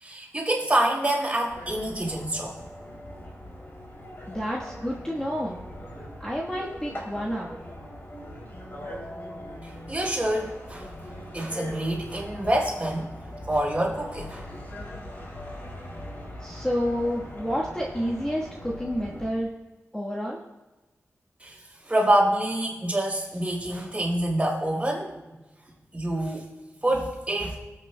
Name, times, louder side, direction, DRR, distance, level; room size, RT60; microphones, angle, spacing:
voice 1, 0.0-2.5 9.9-10.9 11.3-13.1 13.5-14.4 21.4-21.5 21.9-25.1 25.9-26.5 26.8-27.6, right 1 dB, 25° right, -2 dB, 4.0 m, -26 dB
sound 1, 1.5-19.3, left 1 dB, 45° left, 2.9 m, -41 dB
voice 2, 4.3-5.6 6.2-7.5 16.4-19.5 19.9-20.4, equal, 10° left, -5 dB, 1.3 m, -29 dB
20.0 x 8.3 x 2.2 m, 1.1 s
wide cardioid pair, 95°, 5 cm